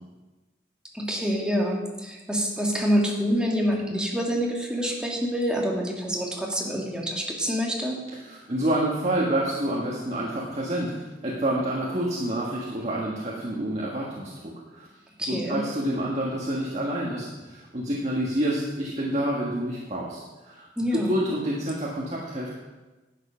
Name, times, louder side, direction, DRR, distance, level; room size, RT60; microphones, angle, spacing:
voice 1, 0.9-8.0 15.2-15.6 20.8-21.1, equal, 5° right, -2 dB, 1.8 m, -26 dB
voice 2, 8.2-14.9 15.3-20.2 20.4-22.5, right 1 dB, 40° right, -4 dB, 1.5 m, -28 dB
11.0 x 7.5 x 5.7 m, 1.2 s
head